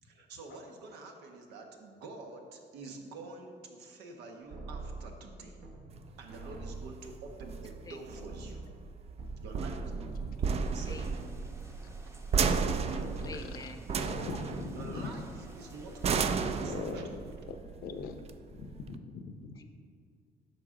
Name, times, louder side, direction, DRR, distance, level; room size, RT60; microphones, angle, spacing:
voice 1, 0.0-5.6 6.2-8.7 9.4-11.0 14.7-15.2 15.5-17.2, right 3 dB, 85° right, 2 dB, 1.2 m, -47 dB
sound 1, 4.5-6.0 6.3-9.6 9.8-10.4 10.8-11.3, right 3 dB, 65° right, 1.4 m, -43 dB
sound 2, 5.9-18.9, right 5 dB, 40° right, 0.4 m, -34 dB
voice 2, 7.8-8.3 10.8-11.3 13.2-14.0 19.6-19.7, left 2 dB, 20° left, 7 dB, 0.7 m, -47 dB
sound 3, 10.6-16.7, right 1 dB, 15° right, 0.8 m, -54 dB
voice 3, 12.8-13.7 14.0-15.1 15.9-16.0 16.6-17.1 17.5-18.2 18.5-19.7, left 5 dB, 65° left, 8 dB, 0.7 m, -42 dB
9.7 x 6.0 x 3.7 m, 2.2 s
cardioid pair, 110°, 17 cm